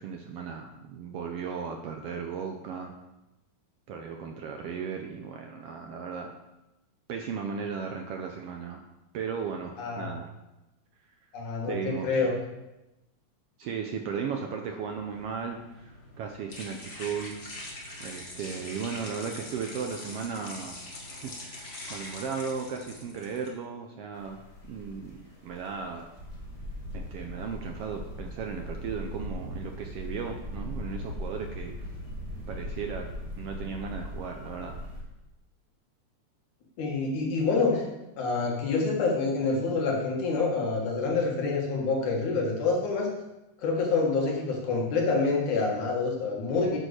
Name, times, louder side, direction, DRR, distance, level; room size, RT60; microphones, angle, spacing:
voice 1, 0.0-2.9 3.9-6.4 7.1-8.8 9.1-10.3 11.7-12.3 13.6-17.4 18.0-20.8 21.2-24.4 24.7-26.1 26.9-31.9 32.5-33.1 33.4-34.7, right 6 dB, 75° right, 3 dB, 1.4 m, -36 dB
voice 2, 9.8-10.1 11.3-12.3 36.8-37.8 38.2-43.1 43.6-46.8, left 4 dB, 75° left, -2 dB, 3.1 m, -27 dB
sound 1, 14.9-23.5, left 2 dB, 35° left, 1.0 m, -43 dB
sound 2, 24.1-35.0, equal, 15° left, 1.4 m, -39 dB
9.4 x 5.3 x 6.4 m, 0.98 s
omnidirectional pair, 3.5 m